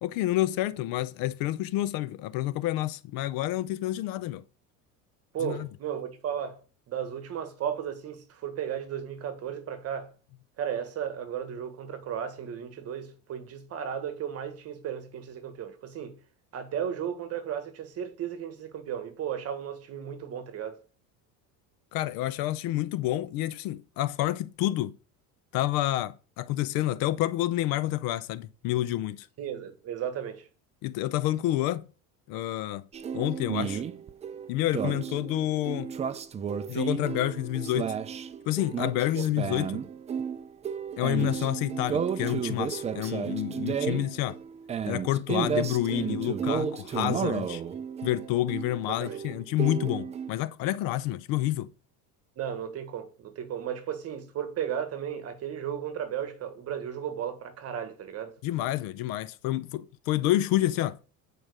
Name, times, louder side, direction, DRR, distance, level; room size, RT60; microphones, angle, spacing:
voice 1, 0.0-4.4 5.4-5.7 21.9-25.0 25.5-29.3 30.8-31.9 32.3-32.9 33.1-33.8 34.5-35.9 36.7-38.0 38.5-39.8 41.0-44.4 44.9-47.6 48.0-51.7 58.4-61.0, left 14 dB, 65° left, 0.6 m, -29 dB
voice 2, 5.3-6.6 6.9-10.1 10.6-16.2 16.5-20.8 29.4-30.5 39.2-39.3 47.1-47.2 48.9-49.2 52.4-58.3, right 9 dB, 40° right, 1.4 m, -35 dB
sound 1, 32.9-50.3, right 7 dB, 20° right, 0.4 m, -33 dB
9.0 x 4.9 x 6.4 m
cardioid pair, 150°, 37 cm